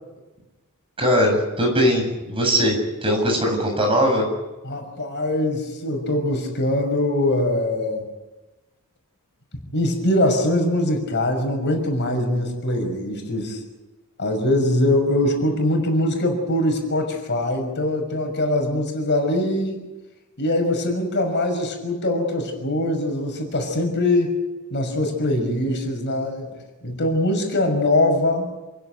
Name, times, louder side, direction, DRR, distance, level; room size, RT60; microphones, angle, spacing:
voice 1, 1.0-2.8 3.0-4.2, equal, 25° right, 2 dB, 7.6 m, -20 dB
voice 2, 4.6-8.0 9.7-13.6 14.2-19.8 20.4-24.3 24.7-26.5 26.8-28.5, left 1 dB, 55° left, 3 dB, 6.0 m, -22 dB
28.5 x 16.5 x 9.5 m, 1.1 s
head